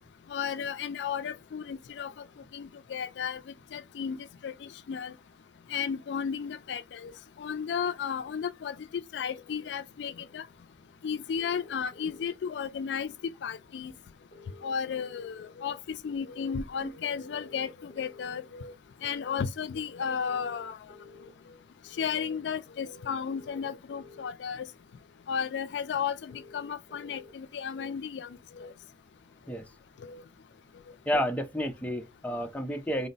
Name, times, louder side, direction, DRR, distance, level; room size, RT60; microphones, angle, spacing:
voice 1, 0.3-2.1 2.5-3.4 3.7-5.1 5.7-7.1 7.4-10.5 11.0-13.1 13.4-13.9 14.6-18.7 19.0-20.8 22.0-24.7 25.3-28.3 28.6-28.7 30.0-30.2, left 7 dB, 80° left, 0.3 m, -34 dB
sound 1, 11.4-12.3 14.3-15.3 17.3-18.3 20.3-21.3 23.3-24.3 26.3-27.3, left 3 dB, 50° left, 0.9 m, -51 dB
voice 2, 31.1-33.1, equal, 10° left, 0.5 m, -30 dB
4.3 x 2.1 x 3.9 m
head